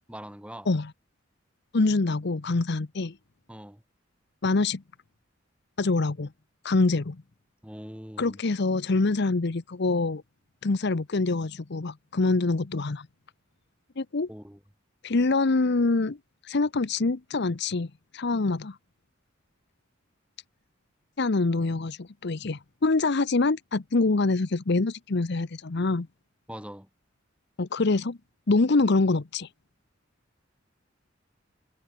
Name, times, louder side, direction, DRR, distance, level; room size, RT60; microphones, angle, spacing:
voice 1, 0.1-0.7 3.5-3.8 7.6-8.4 14.3-14.6 26.5-26.9, equal, 5° right, 3.8 m, -42 dB
voice 2, 1.7-3.2 4.4-4.8 5.8-6.3 6.6-7.2 8.2-10.2 10.6-13.1 14.0-14.3 15.0-16.2 16.4-18.8 21.2-26.1 27.6-28.2 28.5-29.5, left 3 dB, 60° left, 0.8 m, -25 dB
head